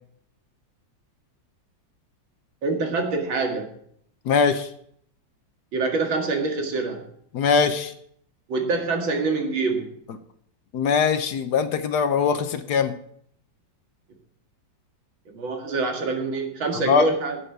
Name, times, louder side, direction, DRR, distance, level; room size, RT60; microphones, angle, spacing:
voice 1, 2.6-3.7 5.7-7.1 8.5-9.9 15.3-17.4, right 3 dB, 90° right, 3 dB, 2.8 m, -25 dB
voice 2, 4.2-4.7 7.3-7.9 10.7-12.9 16.9-17.0, left 5 dB, 65° left, 10 dB, 1.3 m, -21 dB
11.0 x 7.6 x 6.6 m, 0.66 s
omnidirectional pair, 2.1 m